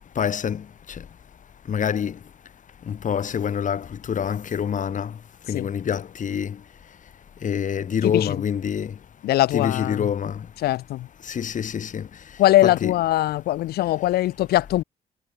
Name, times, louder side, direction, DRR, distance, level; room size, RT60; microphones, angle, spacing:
voice 1, 0.2-1.0 1.7-2.2 2.9-5.1 5.5-6.6 7.4-8.9 9.5-10.5 11.2-12.1 12.6-12.9, left 8 dB, 55° left, 6.1 m, -26 dB
voice 2, 8.0-8.4 9.2-10.1 10.6-11.1 12.4-14.8, left 15 dB, 90° left, 6.0 m, -21 dB
cardioid pair, 85°, 16 cm